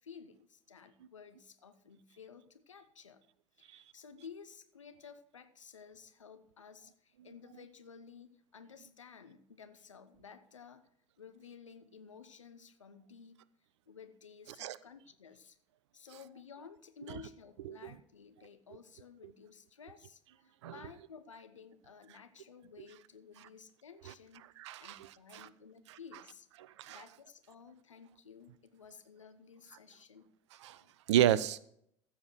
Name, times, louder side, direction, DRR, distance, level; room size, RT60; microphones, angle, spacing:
voice 1, 0.0-3.2 3.6-10.9 11.2-13.4 13.9-15.6 15.9-24.5 24.8-26.5 26.9-30.3 30.8-31.0, left 6 dB, 80° left, 9 dB, 1.0 m, -54 dB
voice 2, 24.6-25.5 25.9-26.0 26.8-27.0 30.6-30.8 31.1-31.6, right 11 dB, 65° right, 19 dB, 0.6 m, -31 dB
15.0 x 7.4 x 4.5 m, 0.68 s
figure-of-eight pair, 65°, 16 cm